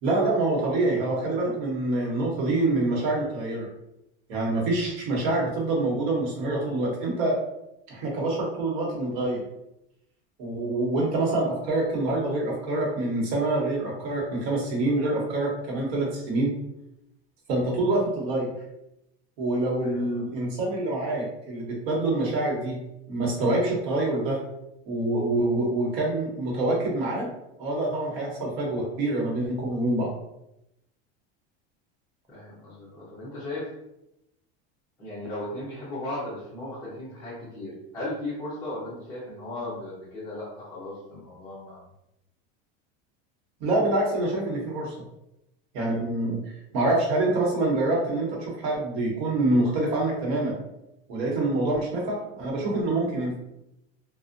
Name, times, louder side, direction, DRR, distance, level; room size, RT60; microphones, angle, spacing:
voice 1, 0.0-3.7 4.3-7.4 7.9-9.4 10.4-16.5 17.5-18.5 19.4-22.8 23.1-24.4 24.9-27.3 27.6-30.1 43.6-44.9 45.7-46.4 46.7-50.6 51.1-53.4, right 2 dB, 70° right, -1 dB, 0.9 m, -26 dB
voice 2, 19.8-20.2 32.3-33.7 35.0-41.8, left 1 dB, 10° left, -12 dB, 0.5 m, -36 dB
2.5 x 2.1 x 2.4 m, 0.86 s
cardioid pair, 170°, 32 cm